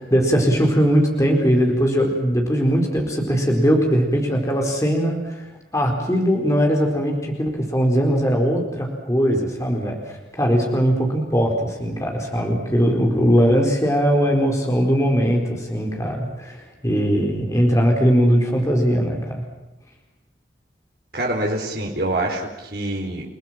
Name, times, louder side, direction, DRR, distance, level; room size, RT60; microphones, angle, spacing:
voice 1, 0.0-5.4 5.7-19.4, equal, 15° left, 1 dB, 4.4 m, -20 dB
voice 2, 21.1-23.2, right 1 dB, 55° right, 0 dB, 4.4 m, -25 dB
30.0 x 19.0 x 7.6 m, 0.99 s
head